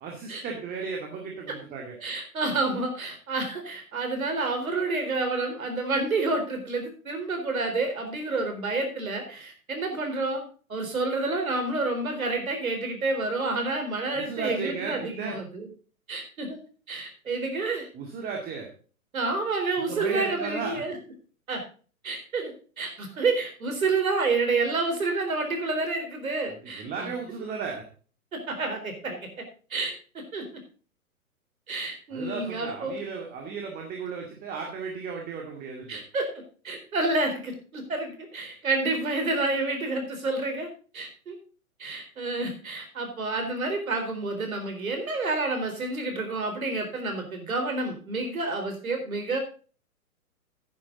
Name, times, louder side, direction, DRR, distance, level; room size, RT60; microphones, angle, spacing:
voice 1, 0.0-2.0 14.1-15.4 17.9-18.7 19.9-20.9 26.5-27.8 32.1-36.0, right 5 dB, 20° right, 1 dB, 2.2 m, -35 dB
voice 2, 2.0-10.4 10.7-15.7 16.1-16.6 16.9-17.9 19.1-21.0 21.5-21.6 22.0-27.1 28.3-29.4 29.7-30.5 31.7-33.0 35.9-36.3 36.6-40.7 40.9-41.4 41.8-49.4, right 3 dB, 70° right, 5 dB, 4.1 m, -29 dB
10.5 x 10.0 x 3.9 m, 0.38 s
figure-of-eight pair, 120°, 43 cm